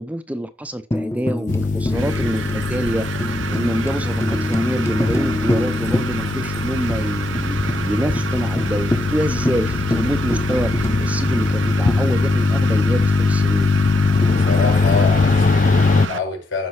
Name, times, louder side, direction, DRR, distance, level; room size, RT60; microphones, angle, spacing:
voice 1, 0.0-3.1 3.5-13.7, right 1 dB, 10° right, 0.5 m, -26 dB
Tambourine, 0.9-6.6 6.9-7.0 7.3-7.8 8.2-8.3 8.6-12.7 14.2-15.2, left 1 dB, 15° left, 0.8 m, -27 dB
sound 1, 1.5-16.1, left 4 dB, 40° left, 0.5 m, -20 dB
sound 2, 1.9-16.2, right 6 dB, 75° right, 0.7 m, -30 dB
voice 2, 14.2-16.7, left 4 dB, 75° left, 5.0 m, -27 dB
15.0 x 5.3 x 3.2 m
head